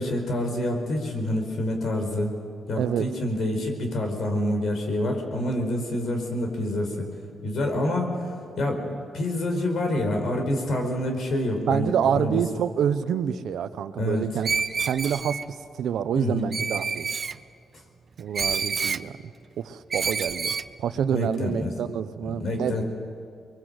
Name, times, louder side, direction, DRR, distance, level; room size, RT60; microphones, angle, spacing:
voice 1, 0.0-2.3 2.7-7.1 7.4-8.1 8.6-8.8 9.1-12.4 14.0-14.3 16.1-16.5 21.1-21.7 22.2-22.8, left 1 dB, 70° left, 4 dB, 4.8 m, -27 dB
voice 2, 2.8-3.1 11.7-14.5 14.9-15.4 15.8-17.1 18.2-19.1 19.6-20.5 20.8-22.8, right 8 dB, 80° right, 12 dB, 0.9 m, -27 dB
Screech, 14.4-15.5 16.5-17.4 18.3-19.0 19.9-20.7, right 5 dB, 45° right, 0.6 m, -28 dB
24.5 x 22.5 x 7.9 m, 2.3 s
cardioid pair, 80°, 0 cm